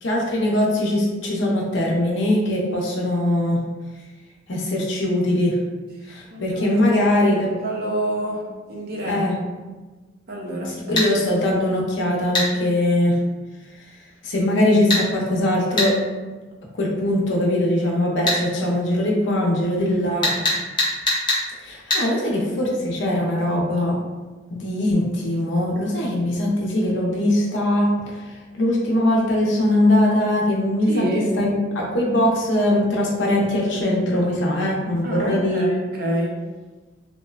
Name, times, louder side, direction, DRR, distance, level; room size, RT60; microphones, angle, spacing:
voice 1, 0.0-3.6 4.5-5.6 6.1-7.5 9.0-9.4 10.6-13.2 14.2-15.9 16.8-20.5 21.6-23.9 24.5-27.9 28.6-35.7, left 1 dB, 80° left, -2 dB, 0.6 m, -21 dB
voice 2, 6.3-6.7 7.6-8.4 8.7-9.2 10.3-11.0 30.9-31.3 35.0-36.4, right 1 dB, 55° right, -1 dB, 0.5 m, -27 dB
sound 1, 11.0-11.1 12.3-12.5 14.9-15.0 15.8-15.9 18.3-18.4 20.2-21.4 21.9-22.0, left 2 dB, 25° left, 0.6 m, -20 dB
2.8 x 2.1 x 2.3 m, 1.3 s
head